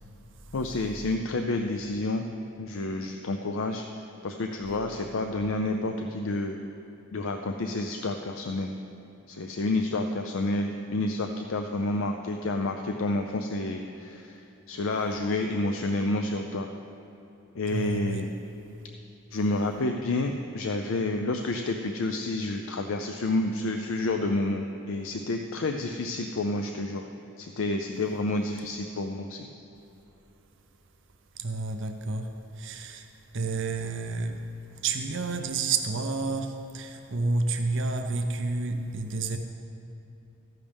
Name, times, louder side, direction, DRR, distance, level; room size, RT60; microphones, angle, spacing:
voice 1, 0.5-2.3 2.6-3.9 4.2-6.6 7.1-8.7 9.3-16.7 17.5-18.3 19.3-27.1 27.4-29.5, left 2 dB, 70° left, 5 dB, 0.5 m, -29 dB
voice 2, 17.7-18.3 31.4-33.1 33.3-34.4 34.8-39.4, right 3 dB, 60° right, 5 dB, 0.6 m, -30 dB
14.0 x 10.5 x 3.5 m, 3.0 s
head